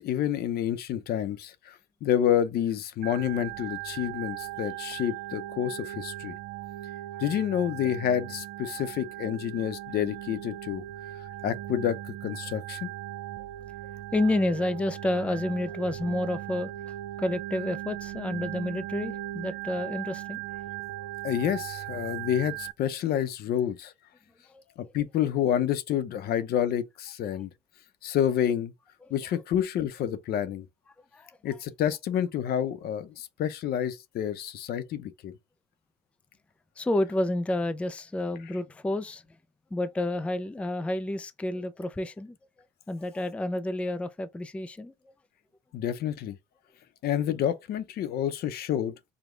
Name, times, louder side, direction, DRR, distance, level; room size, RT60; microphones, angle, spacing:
voice 1, 0.0-6.3 7.2-10.8 11.4-12.9 21.2-23.9 24.8-27.5 28.0-28.7 29.1-30.7 31.4-35.3 45.7-46.4 47.0-48.9, left 10 dB, 65° left, 0.7 m, -29 dB
Organ, 3.0-22.7, right 15 dB, 70° right, 0.4 m, -38 dB
voice 2, 14.1-20.6 24.5-24.9 29.0-29.1 31.1-31.4 36.8-39.2 39.7-42.4 42.9-44.9, left 1 dB, 5° left, 0.4 m, -30 dB
5.1 x 2.2 x 3.8 m
cardioid pair, 110°, 17 cm